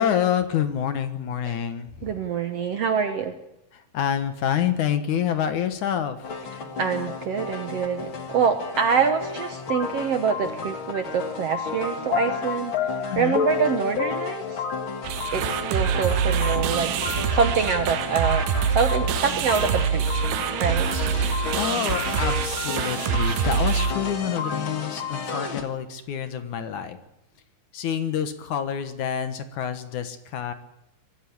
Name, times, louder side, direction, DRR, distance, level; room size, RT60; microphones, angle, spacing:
voice 1, 0.0-2.1 3.7-6.3 13.1-13.4 21.6-27.0 27.7-30.5, left 9 dB, 65° left, 9 dB, 2.5 m, -27 dB
voice 2, 2.0-3.3 6.6-14.7 15.3-16.9 17.3-20.1 20.6-20.9, right 6 dB, 60° right, 7 dB, 1.7 m, -25 dB
sound 1, 6.2-25.6, left 6 dB, 45° left, 1.9 m, -31 dB
sound 2, 15.0-23.9, right 7 dB, 85° right, 2.9 m, -25 dB
23.5 x 14.0 x 8.7 m, 0.87 s
omnidirectional pair, 4.1 m